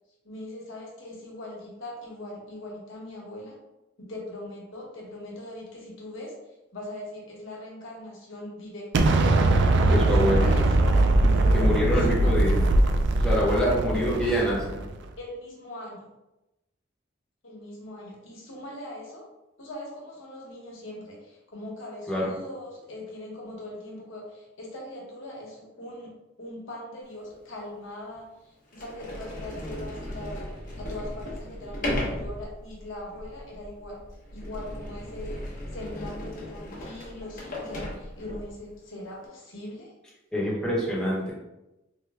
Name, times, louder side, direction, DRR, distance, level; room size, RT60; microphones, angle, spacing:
voice 1, 0.2-3.6 4.0-6.3 6.7-8.9 9.5-10.9 11.3-12.3 13.3-14.2 15.2-16.1 17.4-19.3 19.6-26.1 26.4-30.5 30.8-34.0 34.3-35.4 35.7-39.9, left 1 dB, 80° left, -3 dB, 1.0 m, -41 dB
Explosion, 8.9-14.9, right 2 dB, 65° right, 0.3 m, -21 dB
voice 2, 9.9-10.5 11.5-12.6 13.2-14.8 22.1-22.3 40.3-41.3, equal, 5° left, -7 dB, 0.9 m, -25 dB
Sliding door, 27.3-27.4 28.1-28.2 28.7-38.6, left 1 dB, 45° left, 0.8 m, -36 dB
3.4 x 2.1 x 3.4 m, 0.95 s
head